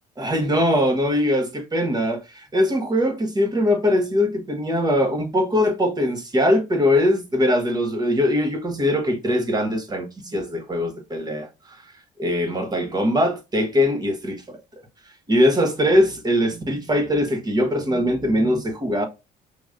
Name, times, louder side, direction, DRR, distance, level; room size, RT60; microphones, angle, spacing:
voice 1, 0.2-11.8 12.2-14.6 15.3-19.1, left 1 dB, 25° right, 1.2 m, -21 dB
5.0 x 3.0 x 2.4 m
cardioid pair, 110°, 17 cm